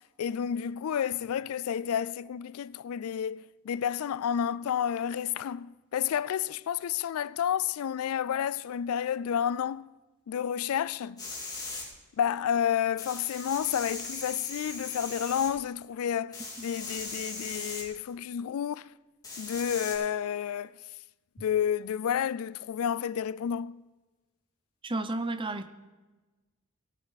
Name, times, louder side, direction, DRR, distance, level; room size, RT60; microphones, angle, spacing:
voice 1, 0.2-9.9 10.3-11.2 12.2-18.9 19.4-20.7 21.4-23.8, left 8 dB, 75° left, 0.3 m, -30 dB
sound 1, 11.2-11.8 13.0-15.5 16.3-17.8 19.2-19.9, left 3 dB, 15° left, 2.9 m, -39 dB
voice 2, 24.8-25.7, right 2 dB, 25° right, 0.7 m, -32 dB
18.5 x 8.8 x 4.1 m
head